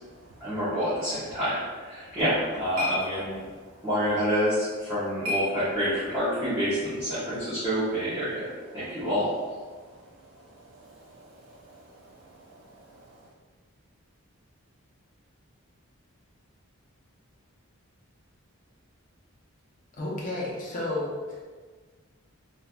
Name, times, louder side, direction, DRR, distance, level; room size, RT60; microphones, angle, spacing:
voice 1, 0.4-3.4 3.8-8.5 8.7-9.3, equal, 15° right, -15 dB, 0.8 m, -27 dB
sound 1, 2.0-6.2, left 2 dB, 70° right, 0.9 m, -37 dB
voice 2, 10.4-12.0 12.4-13.0, right 2 dB, 55° right, -4 dB, 0.3 m, -53 dB
voice 3, 20.0-21.4, left 2 dB, 35° left, -4 dB, 0.6 m, -32 dB
3.1 x 2.4 x 2.3 m, 1.4 s
head